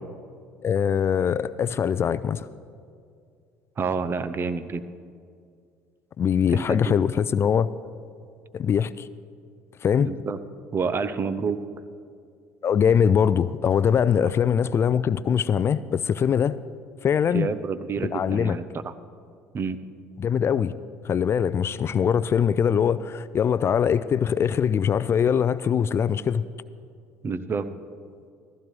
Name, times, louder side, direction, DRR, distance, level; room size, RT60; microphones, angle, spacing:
voice 1, 0.6-2.5 6.2-7.7 8.5-9.1 9.8-10.1 12.6-16.6 17.0-17.5 18.1-18.6 20.2-20.7 21.0-26.4, left 8 dB, 40° left, 0.4 m, -22 dB
voice 2, 3.8-4.8 6.5-7.0 10.0-10.4 10.7-11.6 17.3-18.9 19.5-19.8 27.2-27.7, right 5 dB, 35° right, 0.7 m, -28 dB
15.5 x 15.0 x 3.2 m
hypercardioid pair, 75°, 7 cm